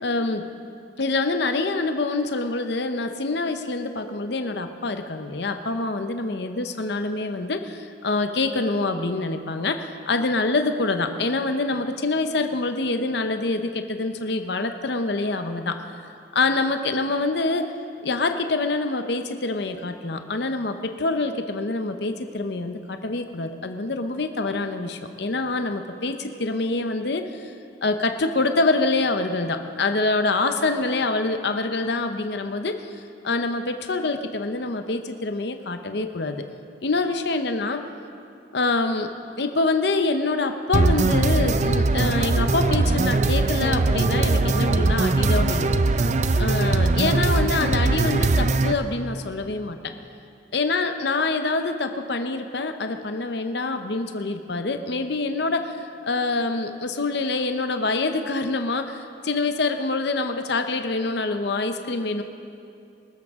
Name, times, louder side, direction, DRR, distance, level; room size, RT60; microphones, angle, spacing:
voice 1, 0.0-0.4 1.0-15.8 16.3-17.7 18.0-27.5 27.8-32.8 33.2-36.5 36.8-37.8 38.5-45.8 46.4-49.8 50.5-62.2, left 3 dB, 60° left, 7 dB, 0.7 m, -25 dB
sound 1, 40.7-48.7, right 3 dB, 35° right, 0.5 m, -21 dB
22.0 x 13.5 x 3.6 m, 2.5 s
head